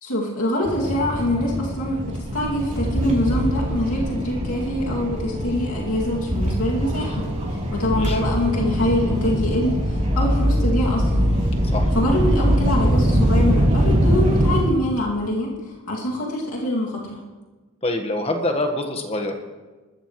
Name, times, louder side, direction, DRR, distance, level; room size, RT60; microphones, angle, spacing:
voice 1, 0.0-11.5 11.9-15.5 15.9-17.2, left 1 dB, 80° left, -3 dB, 2.4 m, -24 dB
sound 1, 0.6-14.6, equal, 35° right, 3.2 m, -22 dB
voice 2, 17.8-19.4, left 1 dB, 25° left, 5 dB, 1.4 m, -25 dB
21.0 x 13.5 x 3.2 m, 1.2 s
head